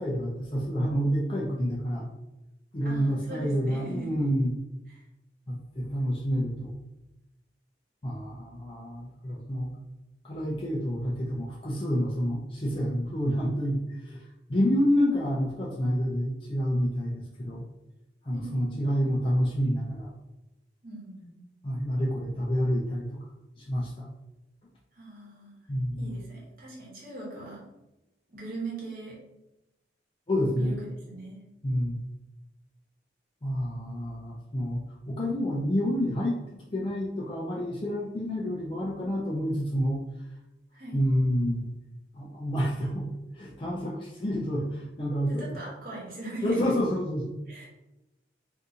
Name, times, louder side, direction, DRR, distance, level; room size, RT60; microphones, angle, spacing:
voice 1, 0.0-2.1 2.7-4.5 5.5-6.8 8.0-9.7 10.2-14.2 14.5-17.7 18.2-20.1 21.6-23.2 23.6-24.1 25.7-26.2 30.3-30.7 31.6-32.0 33.4-34.8 35.1-36.4 36.7-40.0 40.9-41.7 42.1-43.1 43.3-45.6 46.4-47.4, equal, 30° left, -5 dB, 0.5 m, -28 dB
voice 2, 2.8-4.2 4.9-5.0 18.3-18.9 20.8-21.4 24.9-25.6 25.9-27.6 28.3-29.2 30.5-30.8 31.1-31.4 40.7-41.0 45.3-46.7 47.5-47.7, right 2 dB, 50° right, -4 dB, 1.1 m, -40 dB
2.7 x 2.6 x 3.6 m, 0.96 s
head